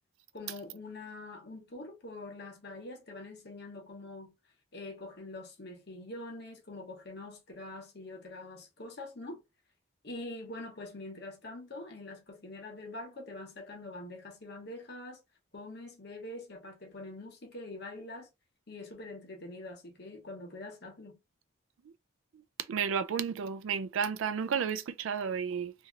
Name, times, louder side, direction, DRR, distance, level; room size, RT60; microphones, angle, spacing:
voice 1, 0.3-4.3 4.7-9.4 10.0-15.2 15.5-18.3 18.7-21.2, left 2 dB, 50° left, 0.9 m, -44 dB
voice 2, 22.7-25.7, right 7 dB, 65° right, 0.3 m, -32 dB
2.9 x 2.7 x 2.4 m
head